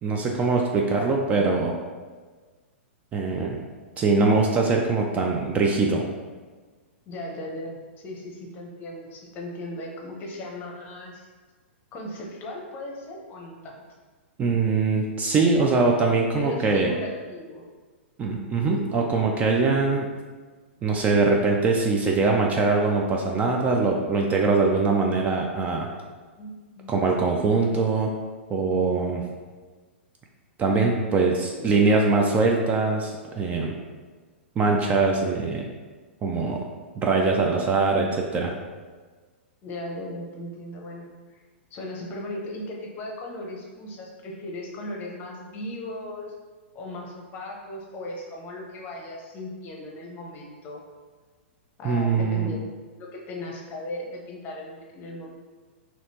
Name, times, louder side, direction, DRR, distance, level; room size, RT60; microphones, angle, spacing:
voice 1, 0.0-1.7 3.1-3.6 4.0-6.0 14.4-16.9 18.2-20.1 20.8-25.9 26.9-28.1 28.5-29.3 30.6-33.7 34.6-35.6 36.2-36.6 37.0-38.5 51.8-52.5, right 3 dB, 20° right, 0 dB, 0.4 m, -22 dB
voice 2, 7.1-11.2 11.9-13.8 16.3-17.7 26.4-26.9 31.2-31.8 39.6-41.1 41.7-46.3 46.7-50.8 51.8-52.7 53.0-55.3, left 1 dB, 30° left, 0 dB, 0.8 m, -37 dB
4.1 x 2.8 x 2.8 m, 1.4 s
hypercardioid pair, 115°, 7 cm